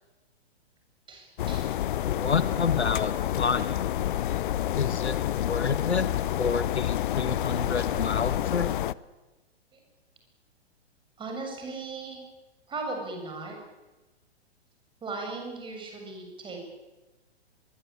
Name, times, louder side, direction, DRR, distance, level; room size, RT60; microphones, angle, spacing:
voice 1, 1.1-1.8 9.7-9.8 11.2-12.2 12.7-13.6 15.0-16.6, right 3 dB, 15° right, 2 dB, 7.3 m, -37 dB
sound 1, 1.4-8.9, left 12 dB, 50° left, 0.8 m, -28 dB
voice 2, 2.1-3.9 4.8-6.1 6.4-8.7, left 5 dB, 80° left, 12 dB, 1.8 m, -29 dB
24.5 x 22.5 x 8.9 m, 1.1 s
figure-of-eight pair, 115°, 33 cm